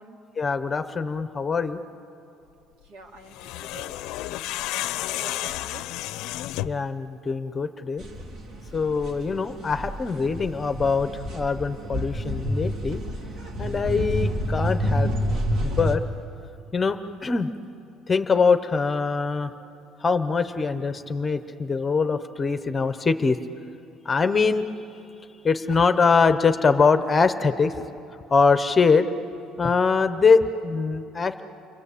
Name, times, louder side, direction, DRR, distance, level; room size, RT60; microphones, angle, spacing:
voice 1, 0.4-1.8 6.6-8.1 8.7-13.0 13.6-15.1 15.6-16.0 16.7-17.5 18.1-19.5 20.0-23.4 24.0-24.6 25.4-27.9 28.3-29.1 29.6-31.4, left 4 dB, 20° left, 10 dB, 0.8 m, -23 dB
voice 2, 2.8-4.0 5.1-5.9, right 3 dB, 75° right, 2 dB, 3.0 m, -46 dB
sound 1, 3.3-6.9, left 15 dB, 80° left, 0.6 m, -31 dB
sound 2, 8.0-16.0, equal, 50° right, 2.5 m, -29 dB
29.5 x 23.5 x 8.4 m, 2.7 s
cardioid pair, 165°, 0 cm